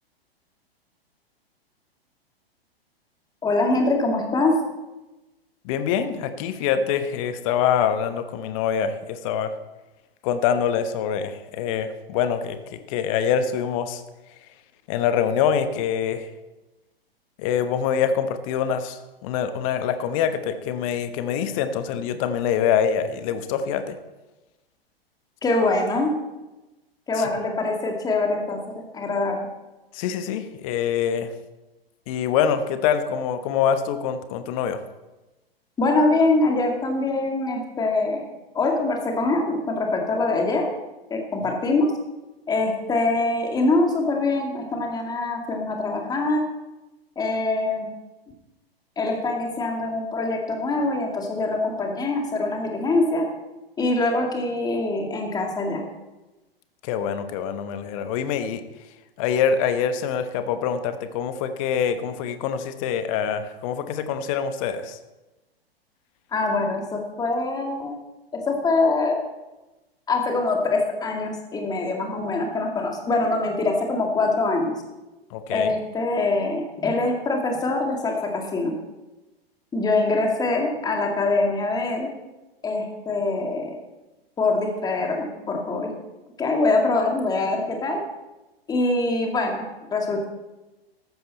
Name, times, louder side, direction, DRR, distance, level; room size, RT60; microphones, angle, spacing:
voice 1, 3.4-4.6 25.4-26.1 27.1-28.6 28.9-29.4 35.8-38.3 38.5-40.6 41.1-41.9 42.5-46.4 47.2-47.9 49.0-53.2 53.8-55.8 66.3-68.0 68.3-69.2 70.1-74.7 75.5-78.7 79.7-82.1 82.6-83.7 84.4-85.9 86.4-88.0 88.7-89.6 89.9-90.2, left 2 dB, 10° left, 2 dB, 2.2 m, -23 dB
voice 2, 5.6-9.5 10.2-14.0 14.9-16.3 17.4-24.0 27.1-27.3 29.9-31.3 32.1-34.8 56.8-58.6 59.2-65.0 75.3-75.7, left 8 dB, 35° left, 10 dB, 1.1 m, -25 dB
14.0 x 12.5 x 4.2 m, 1.1 s
figure-of-eight pair, 110°, 31 cm